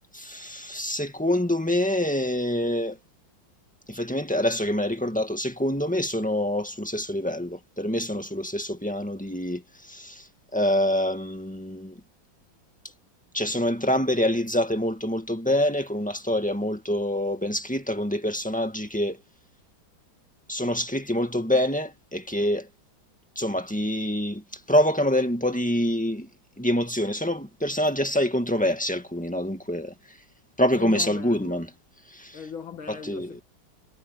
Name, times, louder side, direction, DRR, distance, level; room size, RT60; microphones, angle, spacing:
voice 1, 0.1-3.0 3.9-12.0 13.3-19.2 20.5-22.7 23.3-26.3 26.6-30.2 30.6-31.7 32.1-32.4 32.9-33.3, left 1 dB, 5° left, 1.7 m, -26 dB
voice 2, 30.8-31.6 32.3-33.4, left 6 dB, 80° left, 2.9 m, -38 dB
omnidirectional pair, 2.2 m